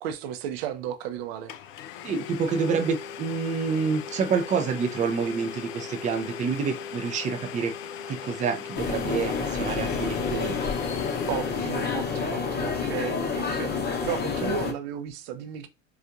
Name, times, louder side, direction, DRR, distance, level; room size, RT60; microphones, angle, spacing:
voice 1, 0.0-1.5 11.3-13.7 14.0-15.7, right 9 dB, 50° right, 0.7 m, -34 dB
Domestic sounds home sounds, 1.0-1.1 1.5-12.5, left 7 dB, 40° left, 0.4 m, -39 dB
voice 2, 2.0-7.7 8.1-10.6, right 5 dB, 20° right, 0.5 m, -28 dB
sound 1, 8.7-14.7, left 5 dB, 25° left, 0.9 m, -29 dB
4.3 x 2.4 x 2.5 m
figure-of-eight pair, 80°, 40 cm